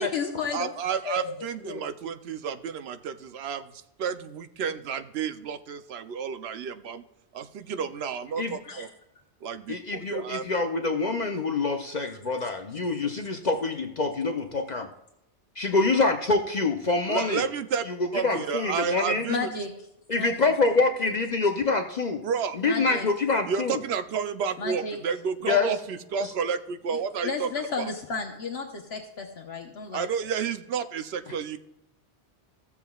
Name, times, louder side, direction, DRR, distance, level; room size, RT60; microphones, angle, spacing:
voice 1, 0.0-0.7 1.0-1.3 8.6-8.9 19.3-19.7 20.1-20.5 22.6-23.1 24.6-25.0 26.9-30.1, left 4 dB, 70° left, 2 dB, 1.2 m, -33 dB
voice 2, 0.5-3.7 4.0-7.0 7.3-8.9 9.4-10.5 17.1-17.8 18.1-19.5 22.2-22.6 23.5-27.5 29.9-31.6, right 6 dB, 70° right, 10 dB, 0.9 m, -31 dB
voice 3, 9.7-14.9 15.6-17.4 17.9-19.3 20.1-22.2 22.6-23.8 25.4-25.7 26.2-26.3, left 3 dB, 45° left, 5 dB, 0.7 m, -26 dB
15.5 x 7.0 x 2.3 m, 0.87 s
omnidirectional pair, 1.1 m